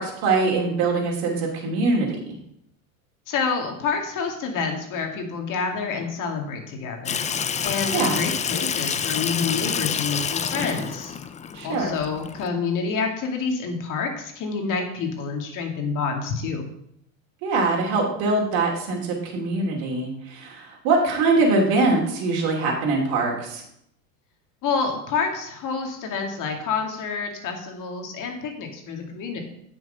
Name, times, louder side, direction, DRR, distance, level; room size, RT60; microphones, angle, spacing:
voice 1, 0.0-2.4 7.9-8.2 11.5-11.9 17.4-23.6, right 3 dB, 60° right, -1 dB, 2.9 m, -23 dB
voice 2, 3.3-7.2 7.6-11.1 11.6-16.7 24.6-29.4, left 5 dB, 50° left, 3 dB, 2.4 m, -28 dB
Water tap faucet / Sink (filling or washing), 7.1-12.5, left 7 dB, 20° left, 0.5 m, -28 dB
9.1 x 6.3 x 5.5 m, 0.75 s
hypercardioid pair, 95°, 41 cm